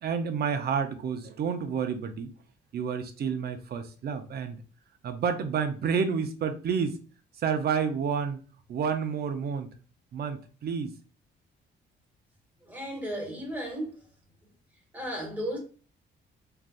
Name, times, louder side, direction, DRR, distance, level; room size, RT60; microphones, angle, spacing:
voice 1, 0.0-2.3 2.7-4.6 5.0-7.0 7.4-8.4 8.7-9.7 10.1-11.0, right 6 dB, 55° right, 0.5 m, -29 dB
voice 2, 12.7-13.9 14.9-15.6, equal, 10° right, 1.3 m, -34 dB
3.3 x 2.6 x 2.3 m
cardioid pair, 90°, 20 cm